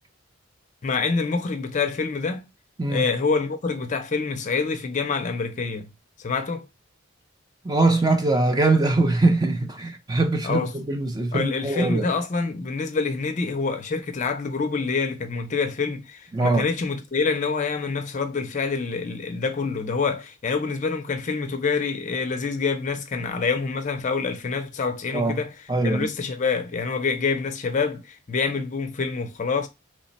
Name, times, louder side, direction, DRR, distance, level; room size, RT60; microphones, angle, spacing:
voice 1, 0.8-2.4 2.9-5.9 6.2-6.7 10.4-10.7 11.3-25.5 25.8-29.7, left 4 dB, 35° left, 0.4 m, -26 dB
voice 2, 7.6-12.1 16.3-16.6 25.1-25.4 25.7-26.1, right 2 dB, 20° right, 0.5 m, -22 dB
3.1 x 2.1 x 4.0 m
head